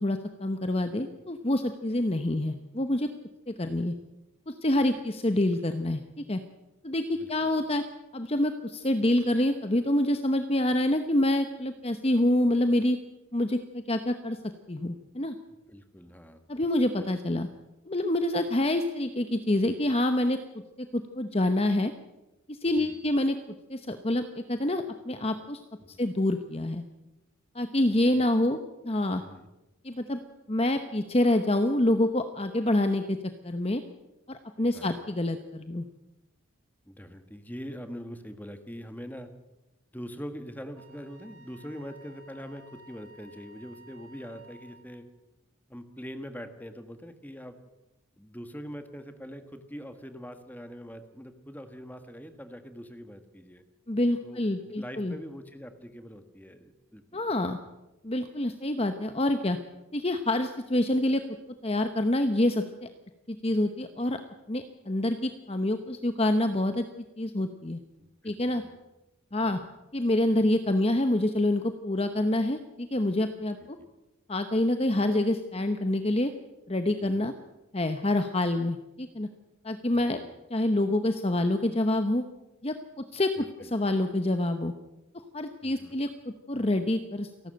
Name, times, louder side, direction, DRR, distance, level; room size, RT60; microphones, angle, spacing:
voice 1, 0.0-3.1 3.5-3.9 4.5-6.4 6.8-7.8 8.1-13.0 13.3-14.4 14.7-15.3 16.5-17.5 17.9-20.4 20.8-21.9 22.5-23.4 23.7-25.6 26.0-26.8 27.5-28.6 28.8-29.2 29.8-30.2 30.5-33.2 33.4-33.8 34.3-35.8 53.9-55.1 57.1-57.6 58.0-59.6 59.9-61.2 61.6-62.9 63.3-64.2 64.5-66.8 67.2-67.8 68.2-68.6 69.3-69.6 69.9-73.8 74.3-76.3 76.7-77.3 77.7-79.3 79.6-80.2 80.5-82.2 82.6-84.7 85.3-86.1 86.5-87.3, left 1 dB, 25° left, 8 dB, 0.9 m, -27 dB
voice 2, 15.7-16.4 22.7-23.0 25.8-26.0 28.1-28.3 29.2-29.5 34.6-35.0 36.9-39.3 39.9-45.0 45.7-47.6 48.2-53.6 54.2-57.5 68.0-68.8 69.4-69.7 73.8-73.9 77.0-77.3 79.9-80.3 83.4-84.0 85.6-86.0, equal, 10° left, 8 dB, 1.5 m, -43 dB
Wind instrument woodwind instrument, 40.7-45.0, right 1 dB, 75° right, 3.3 m, -54 dB
29.0 x 12.0 x 7.7 m, 0.99 s
head